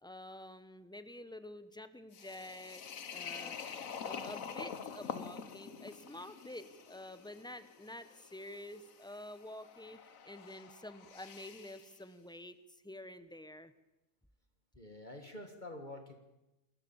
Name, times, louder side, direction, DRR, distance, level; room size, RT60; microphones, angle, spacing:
voice 1, 0.0-2.8 3.1-13.7, left 1 dB, 5° left, 12 dB, 0.9 m, -49 dB
sound 1, 2.1-11.9, left 7 dB, 75° left, 1.6 m, -47 dB
voice 2, 14.8-16.1, left 1 dB, 35° left, 5 dB, 1.9 m, -47 dB
27.5 x 14.0 x 7.2 m, 0.96 s
omnidirectional pair, 1.4 m